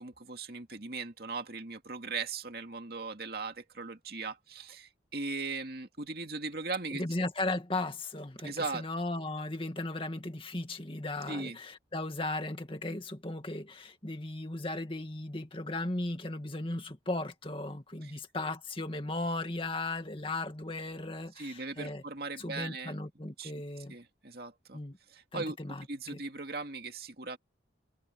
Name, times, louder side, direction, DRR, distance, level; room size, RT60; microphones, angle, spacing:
voice 1, 0.0-7.0 8.4-8.8 11.3-11.6 18.0-18.1 21.4-22.9 23.4-23.5 23.9-24.8 25.1-25.6 25.9-27.4, right 3 dB, 55° right, 2.4 m, -38 dB
voice 2, 6.9-22.0 22.4-24.0 24.7-25.0 25.3-26.2, left 2 dB, 30° left, 2.1 m, -36 dB
head